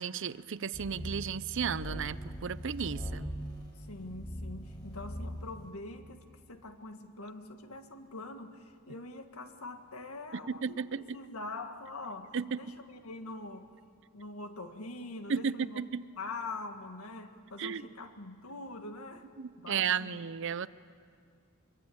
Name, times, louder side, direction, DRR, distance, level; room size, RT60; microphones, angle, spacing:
voice 1, 0.0-3.3 10.3-11.2 12.3-12.7 15.3-16.0 17.6-17.9 19.4-20.7, right 6 dB, 60° right, 17 dB, 0.6 m, -34 dB
sound 1, 0.7-5.7, equal, 20° left, 4.1 m, -41 dB
voice 2, 3.9-13.7 14.1-15.8 16.2-19.3 19.6-20.2, left 2 dB, 80° left, 7 dB, 1.7 m, -44 dB
24.5 x 24.0 x 8.7 m, 2.2 s
head